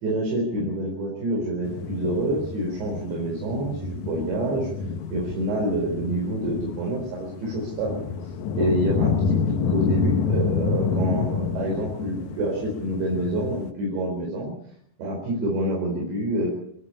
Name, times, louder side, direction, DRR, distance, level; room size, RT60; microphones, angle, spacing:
voice 1, 0.0-4.7 5.1-8.0 8.6-14.5 15.0-16.5, right 1 dB, 75° right, -2 dB, 6.7 m, -27 dB
sound 1, 1.6-13.7, left 5 dB, 80° left, 1.7 m, -28 dB
28.5 x 11.0 x 8.7 m, 0.69 s
omnidirectional pair, 5.2 m